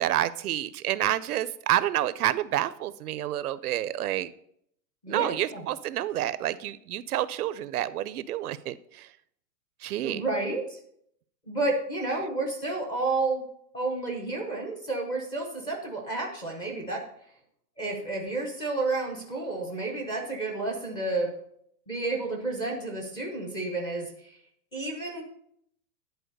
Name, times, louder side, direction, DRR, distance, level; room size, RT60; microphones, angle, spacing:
voice 1, 0.0-4.3 5.1-9.1 9.8-10.2, right 13 dB, 65° right, 16 dB, 0.6 m, -29 dB
voice 2, 5.0-5.6 10.0-10.8 11.5-13.4 13.7-17.1 17.8-21.3 21.9-24.4 24.7-25.2, right 2 dB, 10° left, 1 dB, 0.7 m, -31 dB
10.5 x 4.4 x 6.6 m, 0.69 s
supercardioid pair, 165°, 50 cm